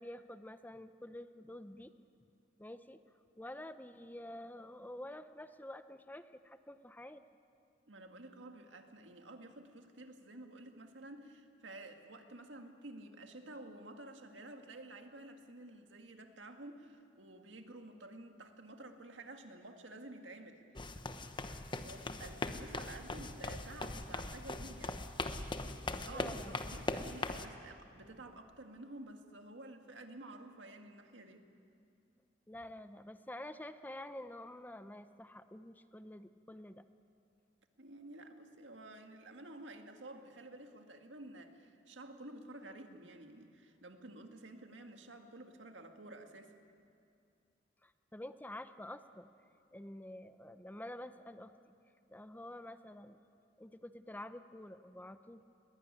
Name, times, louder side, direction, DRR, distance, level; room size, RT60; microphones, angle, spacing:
voice 1, 0.0-1.9 2.6-3.0 3.4-7.2 26.1-26.6 32.5-36.8 47.8-49.3 49.7-51.5 52.1-53.2 53.6-55.5, left 1 dB, 10° left, 11 dB, 0.6 m, -48 dB
voice 2, 7.9-20.6 21.8-25.0 25.8-31.5 37.8-46.5, right 2 dB, 90° right, 5 dB, 1.9 m, -51 dB
sound 1, 20.8-27.5, left 2 dB, 25° left, 0.9 m, -40 dB
21.0 x 17.5 x 9.8 m, 2.5 s
head